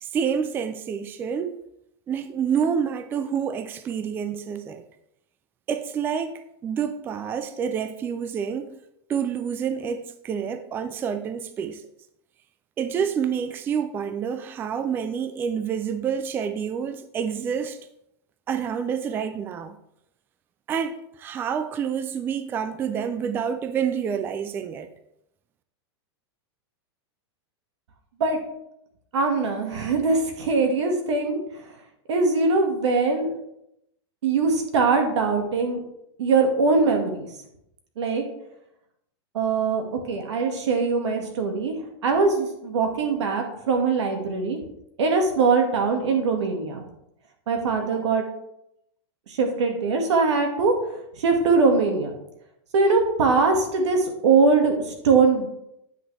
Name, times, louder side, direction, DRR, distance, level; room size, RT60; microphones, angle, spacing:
voice 1, 0.0-1.6 2.1-4.8 5.7-8.8 9.1-11.8 12.8-17.8 18.5-19.8 20.7-24.9, right 7 dB, 15° right, 0.3 m, -28 dB
voice 2, 29.1-31.4 32.1-33.3 34.2-35.8 36.2-37.3 38.0-38.2 39.3-41.7 42.0-44.6 45.0-46.8 47.5-48.2 49.3-50.7 51.2-52.1 52.7-55.5, right 4 dB, 85° right, 1.9 m, -22 dB
9.8 x 6.0 x 3.3 m
supercardioid pair, 155°, 14 cm